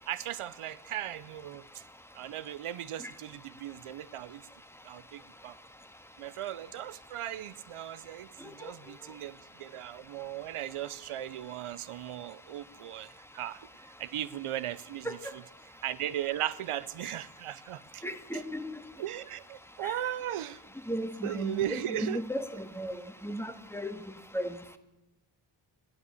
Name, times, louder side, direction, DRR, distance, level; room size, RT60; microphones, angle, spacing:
voice 1, 0.1-1.6 2.1-4.4 4.8-5.6 6.2-15.4 15.8-18.0 18.3-18.4 19.0-20.6 21.2-22.2, right 12 dB, 80° right, 0.7 m, -37 dB
voice 2, 18.0-18.6 19.8-19.9 20.9-22.5 22.8-23.0 23.2-24.0 24.3-24.5, equal, 5° left, 1.9 m, -34 dB
14.0 x 11.5 x 8.3 m
cardioid pair, 45°, 50 cm